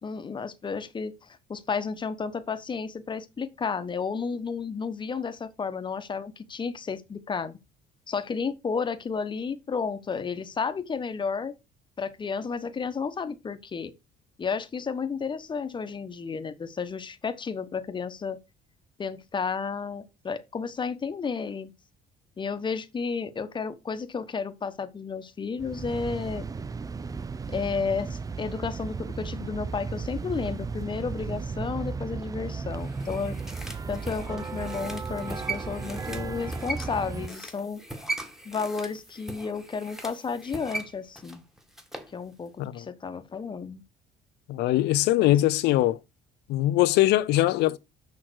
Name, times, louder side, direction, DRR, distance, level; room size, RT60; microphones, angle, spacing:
voice 1, 0.0-7.6 8.1-11.5 12.0-13.9 14.4-18.4 19.0-21.7 22.4-26.4 27.5-33.5 33.9-37.8 38.4-41.4 42.1-43.8 45.2-45.4, left 5 dB, 30° left, 1.1 m, -32 dB
sound 1, 25.6-37.3, right 4 dB, 20° right, 0.5 m, -35 dB
sound 2, 32.7-42.1 42.5-42.6, right 2 dB, ahead, 1.8 m, -39 dB
voice 2, 44.5-46.0 46.5-47.8, left 15 dB, 80° left, 0.6 m, -22 dB
6.5 x 5.8 x 6.3 m
cardioid pair, 110°, 17 cm